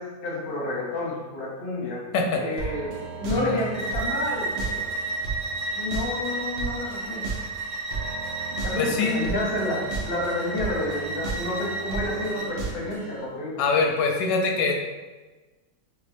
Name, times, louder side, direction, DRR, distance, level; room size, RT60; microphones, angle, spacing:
voice 1, 0.0-2.1 2.4-5.0 5.7-7.2 8.5-13.6, left 1 dB, 50° left, -3 dB, 0.7 m, -30 dB
voice 2, 2.1-2.4 3.3-3.6 8.7-9.2 13.6-14.7, left 4 dB, 85° left, 2 dB, 1.2 m, -24 dB
sound 1, 2.6-13.2, right 4 dB, 75° right, 1.3 m, -35 dB
Bowed string instrument, 3.7-12.5, right 2 dB, 35° right, 0.7 m, -32 dB
4.9 x 2.0 x 2.6 m, 1.2 s
omnidirectional pair, 1.9 m